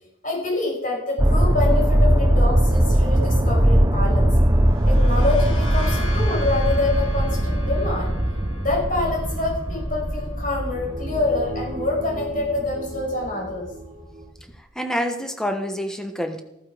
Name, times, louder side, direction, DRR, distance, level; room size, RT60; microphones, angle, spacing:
voice 1, 0.2-4.3 4.9-8.1 8.6-13.7, left 2 dB, 40° left, -3 dB, 5.9 m, -26 dB
sound 1, 1.2-13.9 14.4-14.5, right 1 dB, 15° right, 0.8 m, -20 dB
sound 2, 4.5-12.1, left 1 dB, 85° left, 4.6 m, -39 dB
sound 3, 10.5-14.3, right 1 dB, 35° right, 1.8 m, -37 dB
voice 2, 14.6-16.4, equal, 5° left, 5 dB, 1.2 m, -27 dB
15.0 x 14.0 x 5.0 m, 0.85 s
head